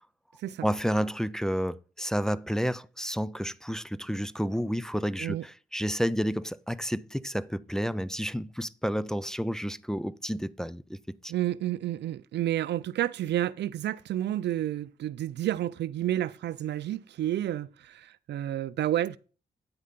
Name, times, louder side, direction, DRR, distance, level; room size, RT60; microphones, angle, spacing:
voice 1, 0.6-11.3, equal, 5° left, 0.5 m, -30 dB
voice 2, 11.3-19.2, right 12 dB, 75° right, 0.4 m, -30 dB
9.6 x 4.9 x 5.7 m
supercardioid pair, 45°, 18 cm